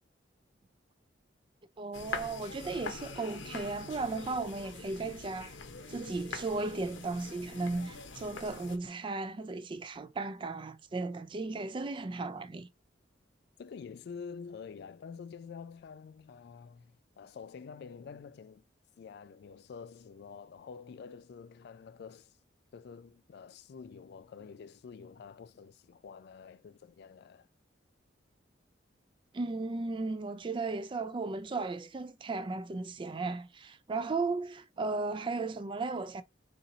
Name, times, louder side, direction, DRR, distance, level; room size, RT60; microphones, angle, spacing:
voice 1, 1.8-5.5 5.9-12.7 29.3-36.2, right 3 dB, 25° right, 0.3 m, -35 dB
sound 1, 1.9-8.8, left 4 dB, 80° left, 0.8 m, -44 dB
voice 2, 13.6-18.6 19.0-22.4 22.7-27.5, left 6 dB, 60° left, 0.3 m, -48 dB
4.2 x 2.6 x 3.8 m
head